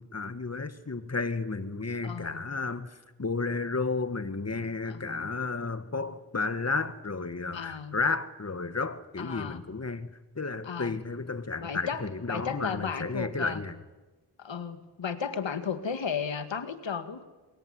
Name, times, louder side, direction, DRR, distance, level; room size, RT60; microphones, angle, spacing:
voice 1, 0.0-13.8, left 3 dB, 35° left, 11 dB, 1.9 m, -32 dB
voice 2, 2.0-2.4 4.9-5.3 7.5-8.0 9.2-9.6 10.6-10.9 11.6-12.0 12.3-13.6 14.4-17.2, left 6 dB, 85° left, 9 dB, 2.2 m, -34 dB
27.0 x 21.5 x 9.8 m, 1.2 s
cardioid pair, 55°, 44 cm